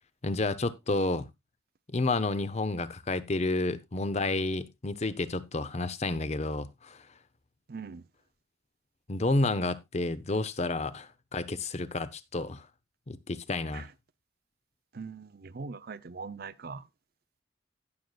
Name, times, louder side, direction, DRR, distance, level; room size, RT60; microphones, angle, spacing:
voice 1, 0.2-1.3 1.9-7.1 9.1-12.7 13.1-13.9, left 2 dB, 35° left, 0.7 m, -30 dB
voice 2, 7.7-8.1 13.7-13.9 14.9-16.9, right 4 dB, 50° right, 0.5 m, -41 dB
16.5 x 6.6 x 2.3 m
head